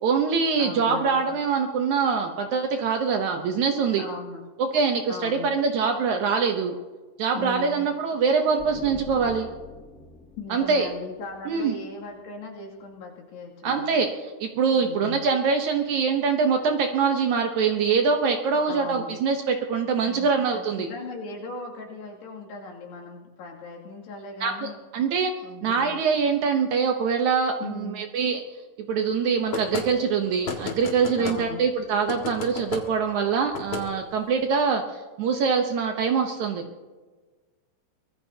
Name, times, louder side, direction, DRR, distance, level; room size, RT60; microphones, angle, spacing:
voice 1, 0.0-4.0 4.6-6.8 7.2-9.5 10.5-10.9 11.5-11.8 13.6-20.9 24.4-24.5 24.9-25.3 25.6-28.4 28.9-36.6, right 5 dB, 80° right, 4 dB, 1.7 m, -24 dB
voice 2, 0.6-1.3 4.0-4.4 5.1-5.5 7.3-7.9 10.4-14.0 14.7-15.2 18.7-19.1 20.0-24.8 25.4-25.9 27.6-28.0 31.1-31.6, left 3 dB, 90° left, -1 dB, 4.6 m, -38 dB
sound 1, 8.6-12.2, left 2 dB, 65° left, 0.7 m, -44 dB
sound 2, 29.5-29.9 30.4-31.4 32.1-32.8 33.5-33.8, left 4 dB, 45° left, 2.2 m, -32 dB
24.0 x 19.5 x 2.8 m, 1.3 s
omnidirectional pair, 4.6 m